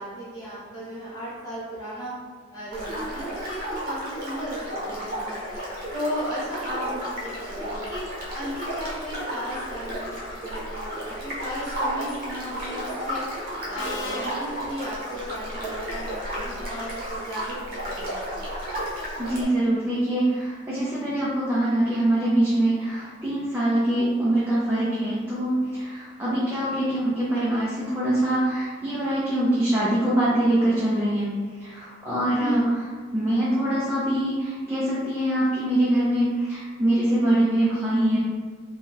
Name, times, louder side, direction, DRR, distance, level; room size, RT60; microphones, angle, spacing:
voice 1, 0.0-2.1 2.5-5.5 5.9-8.0 8.3-13.2 13.7-18.3 32.4-32.6, equal, 20° left, -9 dB, 0.9 m, -35 dB
sound 1, 2.7-19.4, equal, 50° right, 0.9 m, -33 dB
Subway metro underground, 12.3-12.6 13.8-15.5, left 1 dB, 85° left, 0.6 m, -38 dB
voice 2, 19.2-31.3 31.6-32.6 33.1-38.2, right 1 dB, 10° right, -9 dB, 0.5 m, -23 dB
3.5 x 2.2 x 2.8 m, 1.5 s
head